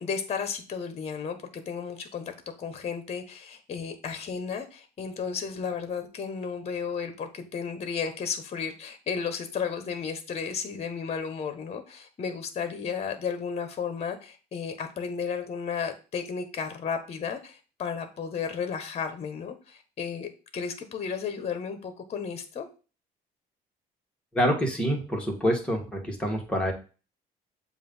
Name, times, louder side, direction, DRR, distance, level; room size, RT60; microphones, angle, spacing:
voice 1, 0.0-22.7, left 6 dB, 40° left, 8 dB, 1.1 m, -33 dB
voice 2, 24.3-26.7, equal, 5° left, 0 dB, 1.8 m, -26 dB
7.5 x 2.6 x 5.4 m, 0.35 s
cardioid pair, 110°, 17 cm